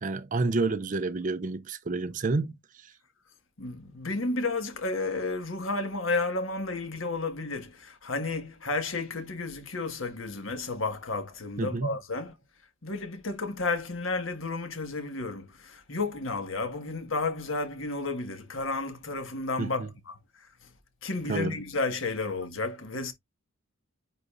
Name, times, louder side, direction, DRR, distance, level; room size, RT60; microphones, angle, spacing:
voice 1, 0.0-2.6 11.6-12.0 19.6-19.9 21.3-21.6, right 3 dB, 40° right, 0.5 m, -29 dB
voice 2, 3.6-12.3 12.8-20.1 21.0-23.1, left 3 dB, 65° left, 1.6 m, -32 dB
10.0 x 4.0 x 2.5 m
head